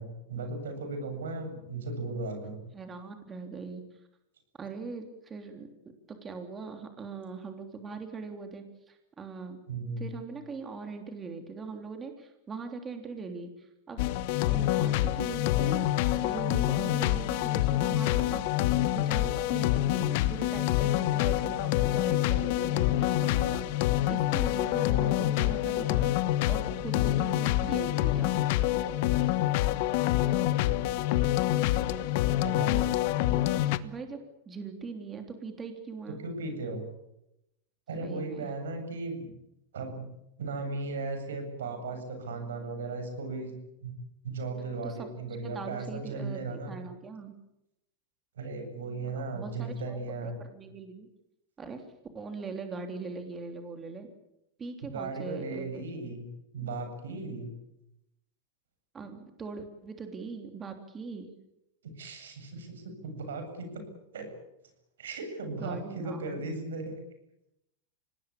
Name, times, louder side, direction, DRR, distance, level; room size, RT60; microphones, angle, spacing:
voice 1, 0.0-2.6 9.7-10.1 32.4-32.8 36.2-36.8 37.9-39.3 39.7-40.0 40.4-43.5 43.8-43.9 44.2-46.8 48.4-50.4 54.9-56.3 56.5-57.5 61.8-63.8 64.1-64.3 65.0-66.9, right 3 dB, 90° right, 6 dB, 7.7 m, -36 dB
voice 2, 2.7-3.8 4.6-5.7 6.1-9.6 10.0-14.0 14.4-15.9 16.1-28.4 33.8-36.2 38.0-38.5 44.8-45.1 45.4-47.3 49.3-51.1 51.6-51.8 52.1-54.1 54.6-55.8 58.9-61.3 65.5-66.5, right 4 dB, 20° right, 5 dB, 3.3 m, -41 dB
sound 1, 14.0-33.8, left 14 dB, 60° left, 1.2 m, -26 dB
25.5 x 19.0 x 8.6 m, 0.86 s
hypercardioid pair, 120°, 0 cm